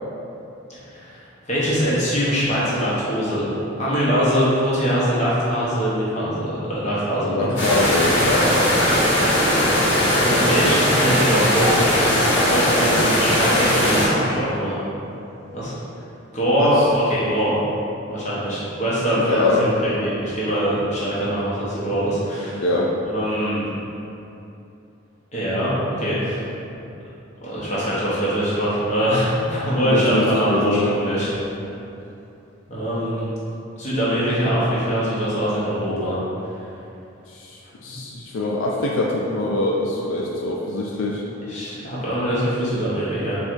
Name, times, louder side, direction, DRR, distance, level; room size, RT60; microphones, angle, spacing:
voice 1, 0.9-3.5 3.8-7.5 9.6-9.9 10.2-14.8 15.5-15.7 16.3-17.6 18.1-22.6 23.1-23.7 25.3-26.5 27.4-31.3 32.7-33.3 33.8-36.2 37.9-38.0 41.5-43.4, equal, 35° left, -8 dB, 0.8 m, -23 dB
voice 2, 7.2-8.5 16.6-16.9 19.3-19.7 22.6-22.9 29.9-31.0 37.3-41.2, left 2 dB, 80° left, -2 dB, 0.3 m, -23 dB
sound 1, 7.6-14.1, left 1 dB, 65° left, 1.0 m, -19 dB
4.4 x 2.3 x 2.5 m, 2.8 s
head